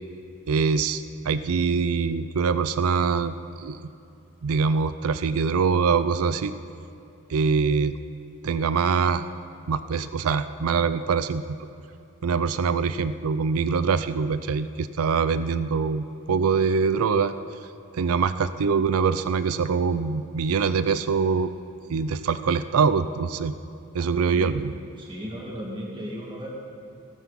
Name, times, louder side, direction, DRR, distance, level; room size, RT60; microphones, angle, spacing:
voice 1, 0.5-3.9 4.4-6.5 7.3-8.0 8.4-9.2 9.7-11.6 12.2-17.3 17.9-21.5 21.9-23.5 23.9-24.7, right 5 dB, 90° right, 13 dB, 0.5 m, -24 dB
voice 2, 24.2-24.7 25.0-26.5, equal, 20° right, -3 dB, 2.3 m, -36 dB
17.0 x 14.0 x 4.1 m, 2.6 s
head